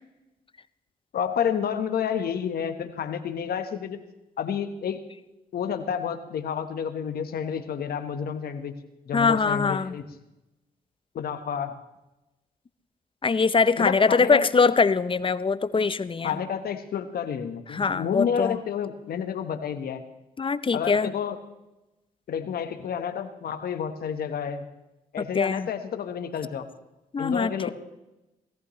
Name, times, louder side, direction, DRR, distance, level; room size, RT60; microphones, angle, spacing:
voice 1, 1.1-4.0 4.4-5.0 5.5-8.7 9.1-10.0 11.1-11.8 13.8-14.5 16.2-20.0 20.7-21.4 22.3-24.6 25.1-26.7 27.2-27.7, left 8 dB, 70° left, 8 dB, 1.3 m, -30 dB
voice 2, 9.1-9.9 13.2-16.4 17.7-18.6 20.4-21.1 25.2-25.7 27.1-27.7, left 4 dB, 30° left, 16 dB, 0.7 m, -23 dB
17.5 x 14.5 x 3.2 m, 0.97 s
supercardioid pair, 55°, 16 cm